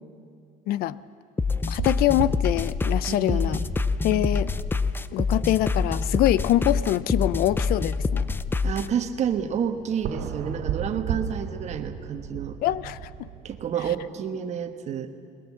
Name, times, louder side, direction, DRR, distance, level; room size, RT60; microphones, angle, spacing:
sound 1, 1.4-8.9, left 4 dB, 10° left, 0.5 m, -26 dB
sound 2, 1.6-14.0, right 9 dB, 70° right, 2.1 m, -37 dB
voice 1, 1.7-3.6 4.0-4.5 5.1-8.2 12.6-13.3, left 14 dB, 60° left, 18 dB, 0.5 m, -24 dB
voice 2, 3.1-3.7 4.1-4.4 8.6-12.6 13.4-15.1, right 8 dB, 40° right, 8 dB, 1.3 m, -30 dB
21.0 x 21.0 x 7.3 m, 2.3 s
cardioid pair, 130°, 17 cm